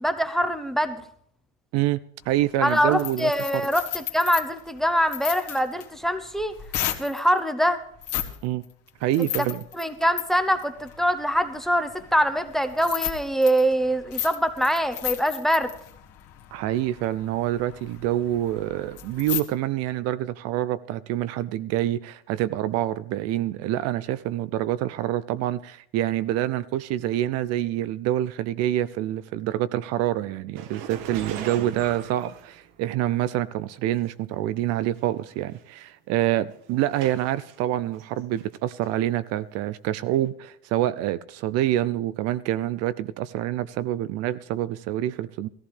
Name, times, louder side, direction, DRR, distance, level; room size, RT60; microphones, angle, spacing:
voice 1, 0.0-1.0 2.6-6.5 7.0-7.8 9.8-15.7, equal, ahead, 0.8 m, -24 dB
voice 2, 1.7-3.7 8.4-8.6 9.0-9.6 16.5-45.5, right 13 dB, 55° right, 0.5 m, -26 dB
sound 1, 2.2-7.3 7.9-8.4 8.6-19.4, left 11 dB, 50° left, 1.8 m, -35 dB
sound 2, 30.5-33.1 34.0-34.1 35.0-35.1 35.3-35.6 36.2-37.6 38.0-38.5 38.8-38.9 40.1-40.2, right 7 dB, 75° right, 1.5 m, -40 dB
17.0 x 14.5 x 3.3 m
supercardioid pair, 130°, 31 cm